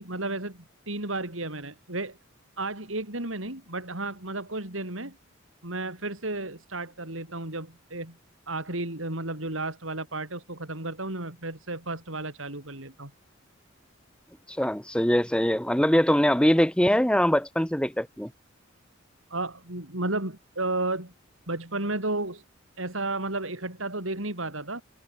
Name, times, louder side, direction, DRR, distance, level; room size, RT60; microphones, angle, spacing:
voice 1, 0.0-2.2 2.6-5.2 5.6-8.2 8.5-13.1 19.3-21.1 21.5-22.4 22.8-24.8, right 2 dB, 75° right, 6.5 m, -33 dB
voice 2, 14.5-18.3, equal, 5° left, 2.0 m, -22 dB
head